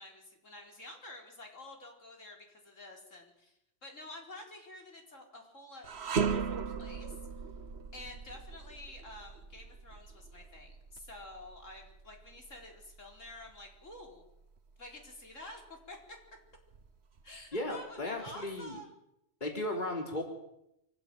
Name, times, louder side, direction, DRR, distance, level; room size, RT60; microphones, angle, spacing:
voice 1, 0.0-5.9 6.3-7.2 7.9-14.2 14.8-16.2 17.2-18.9, left 1 dB, 75° left, 1 dB, 4.7 m, -49 dB
sound 1, 5.8-15.1 15.5-15.7 16.5-17.4, right 6 dB, 55° right, 1.3 m, -39 dB
voice 2, 17.5-18.8 19.4-20.2, left 1 dB, 35° left, 2 dB, 3.7 m, -35 dB
25.5 x 15.5 x 9.1 m, 0.83 s
omnidirectional pair, 1.3 m